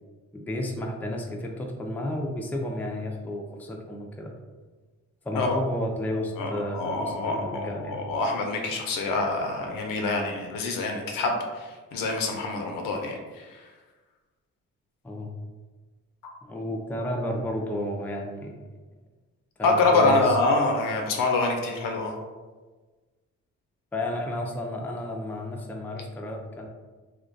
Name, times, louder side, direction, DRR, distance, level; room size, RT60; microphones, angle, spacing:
voice 1, 0.3-4.3 5.2-8.0 15.0-15.3 16.4-18.6 19.6-20.4 23.9-26.7, left 1 dB, 5° left, 1 dB, 0.3 m, -32 dB
voice 2, 6.4-13.6 19.6-22.1, left 3 dB, 75° left, 2 dB, 0.5 m, -26 dB
2.2 x 2.2 x 2.5 m, 1.3 s
supercardioid pair, 55°, 34 cm